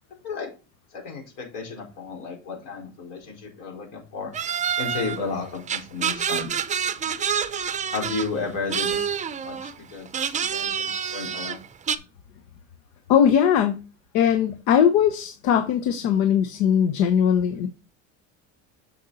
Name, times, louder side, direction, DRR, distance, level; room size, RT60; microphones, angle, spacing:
voice 1, 0.9-4.3 4.8-6.6 7.9-10.1 10.3-11.6, left 4 dB, 70° left, 4.5 m, -33 dB
sound 1, 4.3-5.2 5.7-8.3 8.7-9.7 10.1-12.0, right 7 dB, 20° right, 0.5 m, -27 dB
voice 2, 13.1-13.8 14.1-17.7, left 8 dB, 90° left, 1.0 m, -20 dB
7.1 x 6.6 x 4.1 m
cardioid pair, 125°, 33 cm